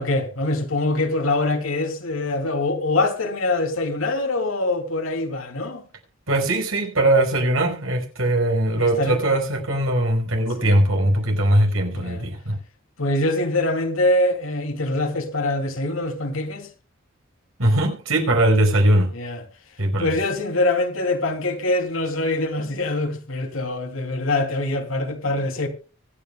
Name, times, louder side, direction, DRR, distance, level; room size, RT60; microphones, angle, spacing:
voice 1, 0.0-5.8 8.7-9.2 10.6-10.7 11.9-12.2 13.0-16.7 19.1-19.4 20.0-25.7, left 2 dB, 90° left, 2.9 m, -24 dB
voice 2, 6.3-12.6 17.6-19.1 19.8-20.1, right 1 dB, 90° right, 5.3 m, -20 dB
24.5 x 9.9 x 2.2 m
head